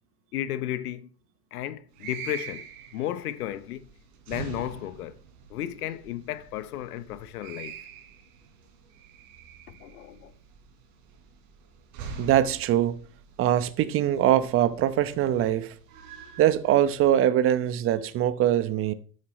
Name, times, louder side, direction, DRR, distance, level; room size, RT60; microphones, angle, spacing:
voice 1, 0.3-1.1 1.5-3.9 4.3-5.2 5.5-7.8 9.7-10.3, left 12 dB, 80° left, 1.0 m, -34 dB
sound 1, 1.9-17.1, right 6 dB, 65° right, 3.7 m, -45 dB
voice 2, 12.2-13.0 13.4-15.7 16.4-18.9, right 11 dB, 30° right, 0.9 m, -22 dB
13.0 x 8.6 x 3.2 m
supercardioid pair, 130°, 45 cm